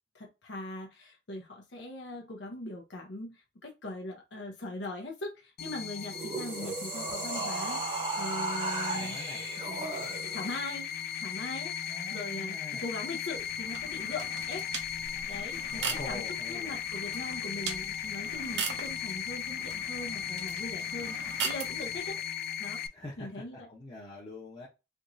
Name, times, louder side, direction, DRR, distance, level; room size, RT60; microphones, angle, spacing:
voice 1, 0.1-9.2 9.7-9.9 10.3-10.9 11.2-11.7 12.1-14.6 15.3-16.2 16.5-21.2 21.4-22.2 22.6-22.8 23.2-23.7, left 1 dB, 75° left, 0.7 m, -40 dB
sound 1, 5.6-22.9, left 9 dB, 55° left, 0.4 m, -37 dB
sound 2, 6.0-10.6, right 3 dB, 30° right, 0.8 m, -35 dB
voice 2, 8.9-9.5 11.9-12.8 15.7-16.8 22.1-22.2 22.9-24.7, left 2 dB, 25° left, 0.8 m, -44 dB
sound 3, 13.3-22.1, right 6 dB, 75° right, 0.7 m, -40 dB
3.5 x 2.9 x 2.6 m
head